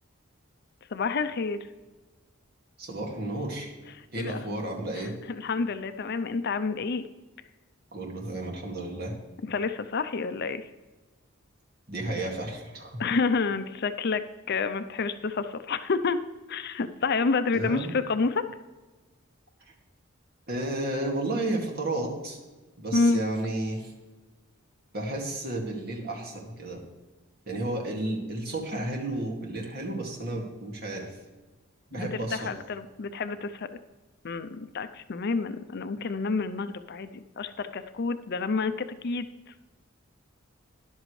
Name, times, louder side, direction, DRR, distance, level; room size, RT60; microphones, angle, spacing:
voice 1, 0.9-1.6 4.2-4.4 4.9-7.0 9.4-10.6 13.0-14.2 14.5-16.2 16.5-18.4 22.9-23.2 31.9-33.8 34.2-39.3, left 4 dB, 55° left, 11 dB, 0.5 m, -29 dB
voice 2, 2.8-3.7 4.1-5.1 7.9-9.1 11.9-12.9 17.5-17.9 20.5-22.4 22.8-23.9 24.9-26.8 27.5-31.1 31.9-32.5, right 1 dB, 50° right, 0 dB, 2.1 m, -32 dB
12.5 x 11.0 x 3.2 m, 1.2 s
head